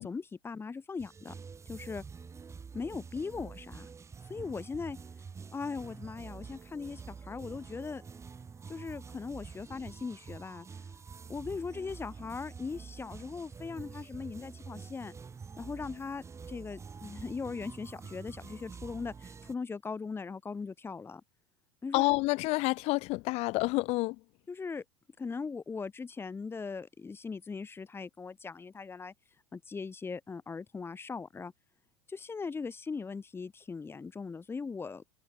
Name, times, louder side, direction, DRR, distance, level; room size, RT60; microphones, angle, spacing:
voice 1, 0.0-1.3 1.7-2.0 2.7-3.9 4.2-5.0 5.5-8.0 8.7-10.7 11.3-15.1 15.6-21.2 21.8-22.1 24.5-24.8 25.2-29.1 29.5-31.5 32.1-35.0, left 4 dB, 15° left, 2.3 m, -39 dB
sound 1, 1.0-19.5, right 5 dB, 20° right, 7.7 m, -47 dB
voice 2, 21.9-24.2, left 22 dB, 50° left, 1.8 m, -28 dB
hypercardioid pair, 90°, 14 cm